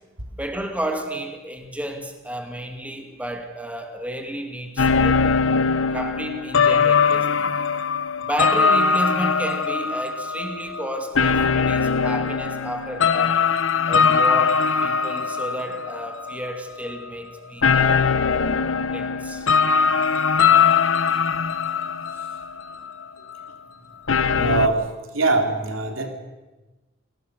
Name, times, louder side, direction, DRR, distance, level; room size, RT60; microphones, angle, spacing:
voice 1, 0.4-5.4 5.9-7.5 8.2-13.4 13.9-18.4 18.9-19.5, right 1 dB, 5° right, 4 dB, 2.4 m, -32 dB
sound 1, 4.8-16.5 16.9-17.1 17.6-23.0 23.4-23.5 24.1-24.7, left 5 dB, 70° left, 1.0 m, -21 dB
voice 2, 24.3-24.8 25.1-26.1, right 3 dB, 80° right, 3 dB, 3.6 m, -22 dB
28.5 x 19.0 x 6.6 m, 1.1 s
head